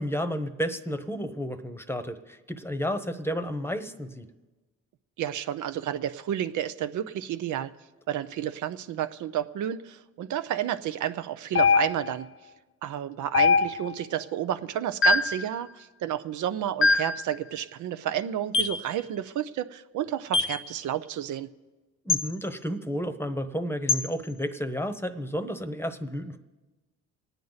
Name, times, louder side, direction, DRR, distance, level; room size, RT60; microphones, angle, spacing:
voice 1, 0.0-4.3 22.0-26.4, equal, 10° left, 9 dB, 1.0 m, -32 dB
voice 2, 5.2-7.7 8.1-12.3 12.8-21.5, right 11 dB, 75° right, 10 dB, 0.7 m, -31 dB
sound 1, 11.6-12.2 13.3-14.0 15.0-15.4 16.8-17.2 18.5-18.8 20.3-20.6 22.1-22.3 23.9-24.1, left 4 dB, 45° left, 0.7 m, -22 dB
25.5 x 9.1 x 4.0 m, 1.2 s
cardioid pair, 90°, 30 cm